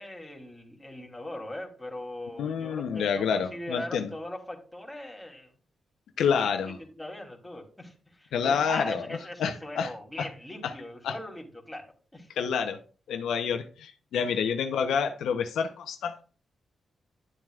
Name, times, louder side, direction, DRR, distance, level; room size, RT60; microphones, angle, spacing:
voice 1, 0.0-5.5 6.4-6.5 6.8-12.3 14.1-14.5, left 1 dB, 5° left, 2.9 m, -40 dB
voice 2, 2.4-4.1 6.2-6.8 8.3-9.0 9.4-9.9 10.2-10.3 10.6-10.7 11.0-11.1 12.4-12.8 13.1-16.2, left 6 dB, 90° left, 0.8 m, -28 dB
11.0 x 7.5 x 2.4 m
cardioid pair, 70°, 0 cm